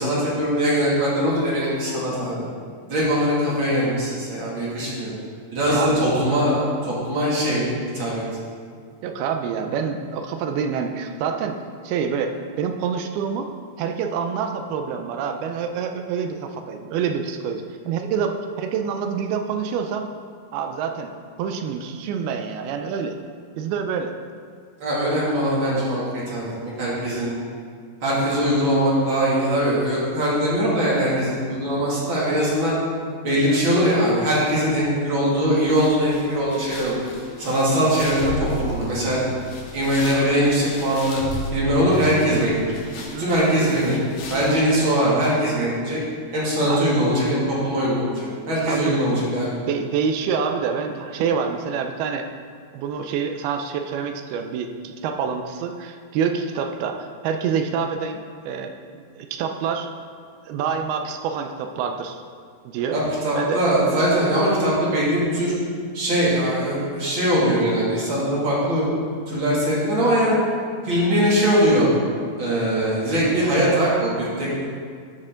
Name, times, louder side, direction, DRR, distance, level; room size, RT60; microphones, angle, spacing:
voice 1, 0.0-2.5 2.9-5.1 5.5-8.2 24.8-27.4 28.0-32.7 33.2-37.0 37.4-39.3 39.7-41.2 41.5-42.6 43.2-44.0 44.3-46.0 46.3-49.5 62.9-65.5 65.9-68.9 69.3-70.4 70.8-71.9 72.4-74.7, equal, 35° right, -7 dB, 2.5 m, -21 dB
voice 2, 5.7-6.0 9.0-11.6 11.8-13.5 13.8-20.1 20.5-21.1 21.4-23.2 23.6-24.1 42.9-43.3 46.7-46.8 48.7-49.0 49.7-52.3 52.7-59.9 60.5-62.2 62.7-63.0 63.4-63.6, right 6 dB, 80° right, 6 dB, 2.3 m, -27 dB
sound 1, 35.6-45.0, left 3 dB, 75° left, 3.4 m, -41 dB
sound 2, 38.2-39.6 41.2-42.6, equal, 60° left, 3.8 m, -31 dB
13.5 x 6.6 x 3.8 m, 2.1 s
omnidirectional pair, 4.9 m